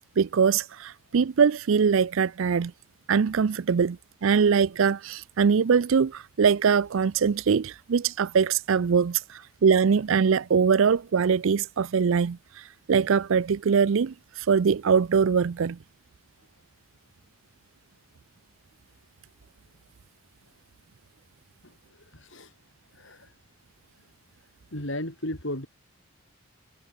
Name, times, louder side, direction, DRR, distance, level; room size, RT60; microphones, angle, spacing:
voice 1, 0.2-2.7 3.1-15.8, right 6 dB, 65° right, 0.4 m, -22 dB
voice 2, 21.6-22.5 22.9-23.3 24.7-25.7, left 1 dB, 60° left, 6.6 m, -35 dB
head